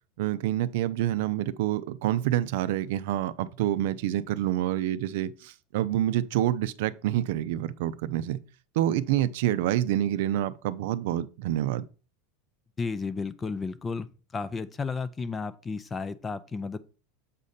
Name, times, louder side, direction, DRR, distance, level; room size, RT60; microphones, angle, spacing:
voice 1, 0.2-8.4 8.7-11.9, right 12 dB, 60° right, 0.5 m, -27 dB
voice 2, 12.8-16.8, left 4 dB, 15° left, 0.4 m, -33 dB
7.4 x 4.2 x 5.0 m
supercardioid pair, 170°, 0 cm